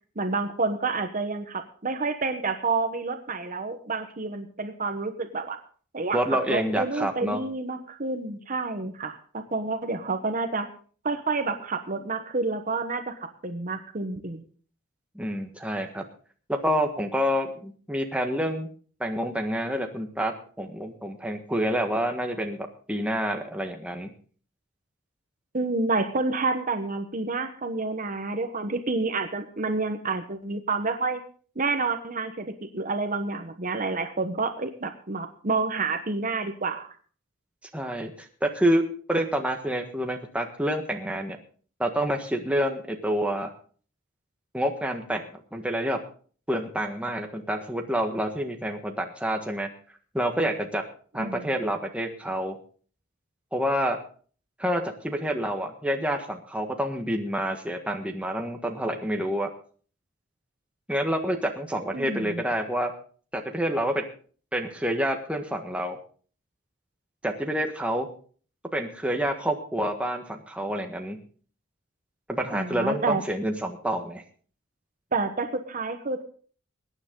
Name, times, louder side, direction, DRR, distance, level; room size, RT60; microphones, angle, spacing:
voice 1, 0.2-5.6 5.9-6.2 6.5-10.7 11.0-14.4 25.5-31.2 31.5-36.9 51.2-51.5 61.9-62.4 72.5-73.2 75.1-76.2, right 3 dB, 40° right, 7 dB, 1.2 m, -29 dB
voice 2, 6.1-7.4 15.1-16.0 16.5-18.7 19.0-24.1 37.7-41.4 41.8-43.5 44.5-46.0 46.5-49.7 50.1-50.9 51.1-52.6 53.5-54.0 54.6-59.5 60.9-62.9 63.3-64.1 64.5-66.0 67.2-68.1 68.7-71.2 72.3-74.2, equal, 5° right, 3 dB, 1.5 m, -28 dB
21.5 x 9.7 x 3.8 m, 0.43 s
head